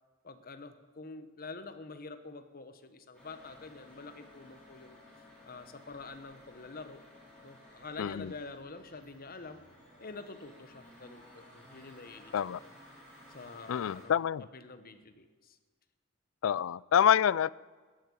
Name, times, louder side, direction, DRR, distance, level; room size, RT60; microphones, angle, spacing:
voice 1, 0.2-5.0 5.4-7.0 7.4-9.6 10.0-12.7 13.3-14.2 14.5-15.6, left 3 dB, 45° left, 1.1 m, -47 dB
sound 1, 3.1-14.1, left 1 dB, 5° left, 5.8 m, -56 dB
voice 2, 8.0-8.3 12.3-12.6 13.7-14.4 16.4-17.5, left 9 dB, 70° left, 0.3 m, -27 dB
14.0 x 10.0 x 8.5 m
head